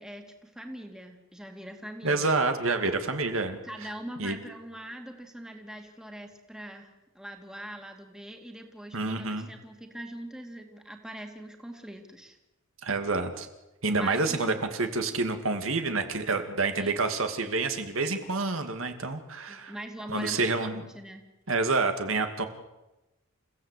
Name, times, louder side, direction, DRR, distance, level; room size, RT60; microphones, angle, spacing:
voice 1, 0.0-2.3 3.6-6.9 7.1-12.4 14.0-14.6 16.8-17.0 19.5-21.2, right 1 dB, 5° right, 4 dB, 2.5 m, -42 dB
voice 2, 2.0-3.9 4.2-4.4 8.9-9.5 12.8-13.5 13.8-19.7 20.1-20.9 21.5-22.4, right 3 dB, 70° right, 7 dB, 2.3 m, -28 dB
29.0 x 16.0 x 8.3 m, 0.99 s
head